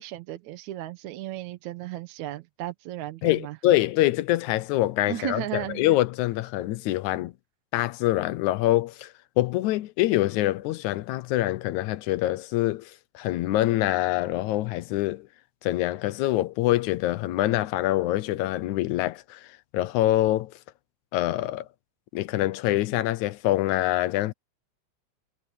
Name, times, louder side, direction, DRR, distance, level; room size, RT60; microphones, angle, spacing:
voice 1, 0.0-3.6 5.1-5.8, right 13 dB, 80° right, 2.3 m, -35 dB
voice 2, 3.2-7.3 7.7-15.3 15.6-19.5 19.7-20.5 21.1-21.7 22.1-24.3, left 15 dB, 90° left, 2.2 m, -25 dB
omnidirectional pair, 3.3 m